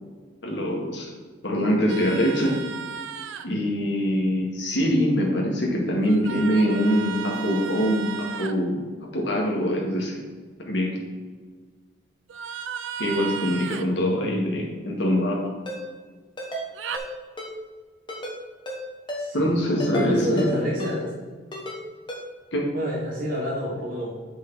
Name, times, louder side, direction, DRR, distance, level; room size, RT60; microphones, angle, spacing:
voice 1, 0.4-1.1 1.4-2.6 3.4-8.8 9.1-10.2 10.6-10.9 13.0-15.4 19.3-20.5 22.5-22.7, equal, 65° left, -1 dB, 1.6 m, -23 dB
sound 1, 1.9-3.5 6.0-8.5 12.3-13.9 16.7-17.0, right 7 dB, 75° right, 0.5 m, -34 dB
voice 2, 13.9-14.5 19.2-19.6 19.9-21.1 22.7-24.1, equal, 45° right, -5 dB, 1.2 m, -29 dB
Ringtone, 15.7-15.8 16.4-16.6 16.9-17.1 17.4-17.5 18.1-18.4 18.7-18.8 19.1-19.2 19.8-20.1 20.4-20.5 20.8-20.9 21.5-21.8 22.1-22.2, equal, 25° left, 1.1 m, -33 dB
7.9 x 5.1 x 3.9 m, 1.5 s
head